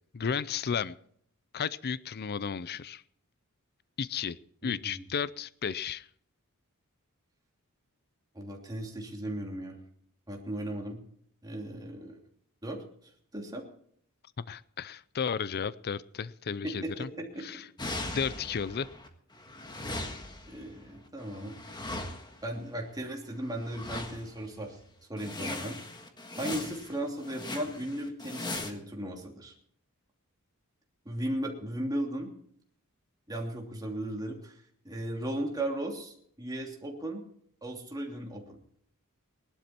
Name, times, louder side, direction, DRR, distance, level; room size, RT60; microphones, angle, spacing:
voice 1, 0.1-1.0 1.5-3.0 4.0-4.4 4.6-6.1 14.4-17.1 17.4-17.7 18.1-18.9, left 6 dB, 45° left, 17 dB, 0.5 m, -33 dB
voice 2, 4.6-5.0 8.3-9.8 10.3-11.0 11.4-12.2 12.6-12.8 13.3-13.6 16.6-17.4 20.5-21.6 22.4-24.8 25.1-25.8 26.4-29.5 31.0-32.3 33.3-34.5 34.8-37.2 37.6-38.6, right 1 dB, 15° right, -1 dB, 2.9 m, -36 dB
sound 1, 17.8-19.1 19.3-22.6 23.6-24.4 24.8-24.9 25.2-28.7, left 2 dB, 20° left, 1.6 m, -39 dB
19.5 x 12.0 x 4.4 m, 0.63 s
head